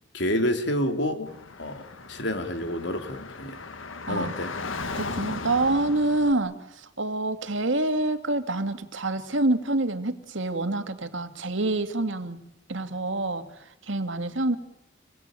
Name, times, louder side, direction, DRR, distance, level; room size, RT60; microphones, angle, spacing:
voice 1, 0.1-1.3 1.6-3.6 4.1-4.5, left 1 dB, 65° left, 3.2 m, -28 dB
Car / Traffic noise roadway noise, 1.3-6.3, left 3 dB, 85° left, 1.7 m, -37 dB
voice 2, 4.9-12.4 12.7-13.5 13.9-14.6, right 2 dB, 75° right, 2.2 m, -27 dB
28.0 x 21.5 x 9.1 m
head